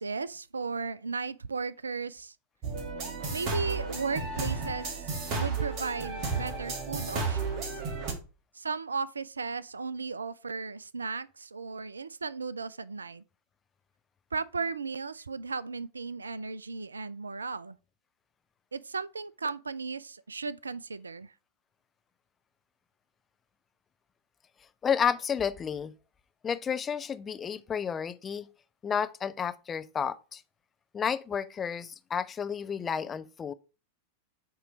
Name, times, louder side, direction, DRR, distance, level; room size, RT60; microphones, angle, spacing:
voice 1, 0.0-2.3 3.3-7.8 8.5-13.2 14.3-17.8 18.7-21.3, right 4 dB, 75° right, 0.3 m, -36 dB
sound 1, 2.6-8.1, right 4 dB, 40° right, 1.3 m, -33 dB
voice 2, 24.8-25.9 26.4-28.5 28.8-30.4 30.9-33.5, left 7 dB, 20° left, 0.4 m, -31 dB
8.0 x 3.0 x 4.9 m
figure-of-eight pair, 90°, 0 cm